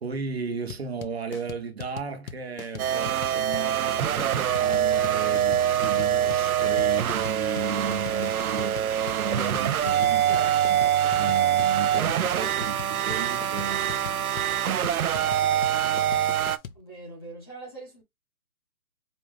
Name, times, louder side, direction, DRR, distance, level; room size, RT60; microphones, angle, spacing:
voice 1, 0.0-8.9 9.1-14.0 14.8-16.3, right 5 dB, 45° right, 1.1 m, -35 dB
sound 1, 0.7-16.8, left 7 dB, 70° left, 0.8 m, -40 dB
sound 2, 2.8-16.6, right 10 dB, 75° right, 0.6 m, -24 dB
voice 2, 16.7-18.0, right 2 dB, 15° left, 0.8 m, -43 dB
5.1 x 2.7 x 3.4 m
hypercardioid pair, 175°, 43 cm